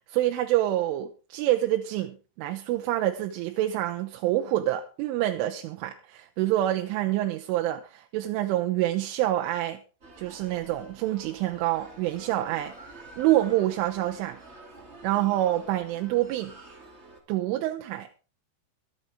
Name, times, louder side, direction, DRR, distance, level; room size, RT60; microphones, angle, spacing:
voice 1, 0.1-9.8 10.2-14.4 15.0-16.5 17.3-18.1, right 14 dB, 85° right, 3.4 m, -27 dB
sound 1, 10.0-17.2, right 2 dB, 20° right, 1.7 m, -48 dB
23.5 x 8.6 x 3.6 m
omnidirectional pair, 5.5 m